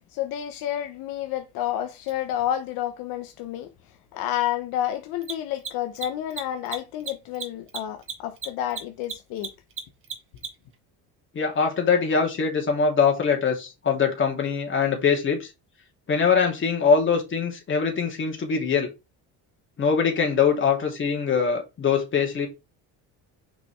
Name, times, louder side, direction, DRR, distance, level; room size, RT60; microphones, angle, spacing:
voice 1, 0.2-3.7 4.1-9.5, left 11 dB, 80° left, 1.0 m, -30 dB
Mechanisms, 2.1-2.2 5.1-10.7, right 6 dB, 35° right, 1.8 m, -35 dB
voice 2, 11.3-15.5 16.1-18.9 19.8-22.5, left 6 dB, 35° left, 2.9 m, -23 dB
6.0 x 5.6 x 3.3 m
cardioid pair, 130°, 35 cm